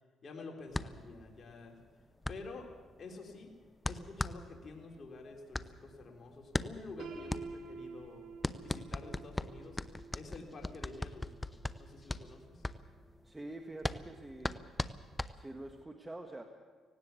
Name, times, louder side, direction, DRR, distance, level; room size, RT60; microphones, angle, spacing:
voice 1, 0.2-1.8 2.3-2.7 3.0-3.5 3.9-8.3 8.6-9.8 10.1-12.6, left 3 dB, 45° left, 1 dB, 3.8 m, -49 dB
sound 1, 0.7-15.8, left 1 dB, 15° left, 0.7 m, -40 dB
Piano, 7.0-12.8, right 4 dB, 75° right, 2.7 m, -50 dB
voice 2, 13.2-14.6 15.3-16.4, right 2 dB, 15° right, 4 dB, 1.5 m, -46 dB
18.0 x 17.5 x 8.3 m, 1.5 s
cardioid pair, 90°, 0 cm